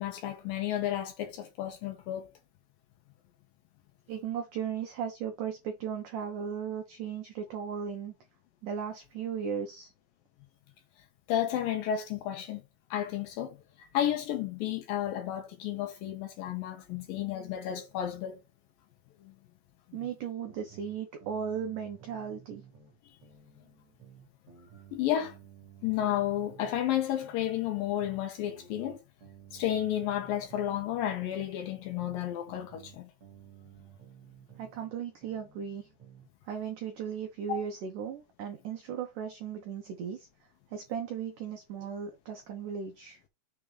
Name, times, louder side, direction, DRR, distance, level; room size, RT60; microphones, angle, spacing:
voice 1, 0.0-2.3 11.3-12.6 12.9-13.6 13.9-18.4 20.0-20.1 24.9-25.3 25.8-29.0 29.5-33.1 37.5-37.7, left 11 dB, 75° left, 2.1 m, -32 dB
voice 2, 4.1-8.1 8.6-9.9 19.9-22.6 34.6-35.9 36.5-40.3 40.7-43.2, right 7 dB, 80° right, 1.9 m, -36 dB
sound 1, 20.5-22.9 23.2-26.9 27.2-30.9 31.2-34.9 35.2-36.3, right 8 dB, 45° right, 3.0 m, -55 dB
7.0 x 3.5 x 4.9 m
omnidirectional pair, 5.1 m